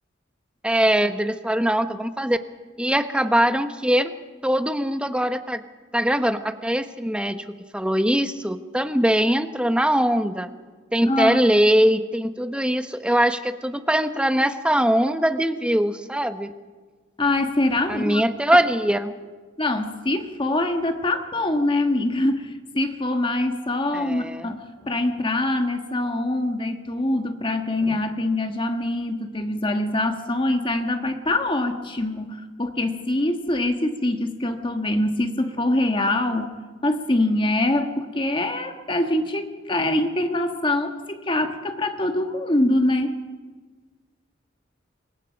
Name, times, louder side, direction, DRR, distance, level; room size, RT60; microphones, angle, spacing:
voice 1, 0.6-2.4 2.8-4.1 4.4-5.6 5.9-10.5 10.9-16.5 17.9-19.1 23.9-24.6, right 1 dB, 5° right, 9 dB, 1.0 m, -22 dB
voice 2, 11.1-11.4 17.2-18.2 19.6-43.2, left 1 dB, 25° left, 6 dB, 1.5 m, -24 dB
27.5 x 23.5 x 5.2 m, 1.4 s
head